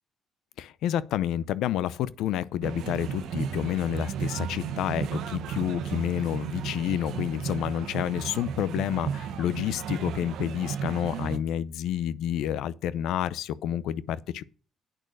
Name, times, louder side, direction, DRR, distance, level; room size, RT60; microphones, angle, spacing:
voice 1, 0.6-14.4, left 11 dB, 85° left, 0.6 m, -29 dB
sound 1, 2.6-11.4, right 8 dB, 75° right, 1.1 m, -34 dB
9.0 x 6.3 x 6.6 m
cardioid pair, 135°, 0 cm